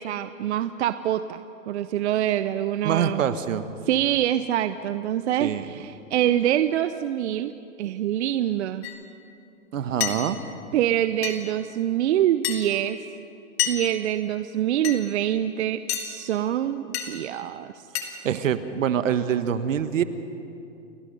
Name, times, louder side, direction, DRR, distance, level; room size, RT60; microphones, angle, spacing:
voice 1, 0.0-3.2 3.9-7.5 7.8-8.9 10.7-13.0 13.7-17.7, right 11 dB, 60° right, 11 dB, 0.8 m, -25 dB
voice 2, 2.8-3.6 5.4-5.7 9.7-10.4 18.2-20.0, right 9 dB, 75° right, 11 dB, 1.4 m, -25 dB
sound 1, 8.8-9.0 10.0-10.2 11.2-11.4 12.4-12.6 13.6-13.8 14.8-15.0 15.9-16.1 16.9-17.1 18.0-18.1, left 11 dB, 50° left, 2.8 m, -27 dB
29.5 x 18.5 x 5.4 m, 2.7 s
hypercardioid pair, 140°, 39 cm